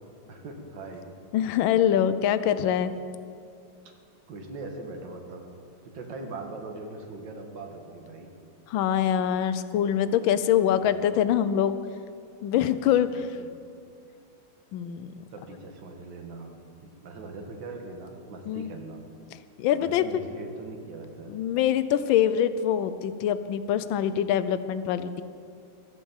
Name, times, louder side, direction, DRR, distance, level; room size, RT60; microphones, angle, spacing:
voice 1, 0.3-1.1 4.3-5.5 5.8-8.3 10.7-11.0 13.1-13.5 15.3-19.0 19.7-21.3, right 3 dB, 70° right, 3 dB, 2.0 m, -41 dB
voice 2, 1.3-2.9 8.7-11.8 12.4-13.3 14.7-15.1 18.5-18.7 19.6-20.0 21.3-25.2, left 10 dB, 80° left, 13 dB, 1.4 m, -24 dB
13.0 x 8.1 x 7.2 m, 2.4 s
omnidirectional pair, 2.1 m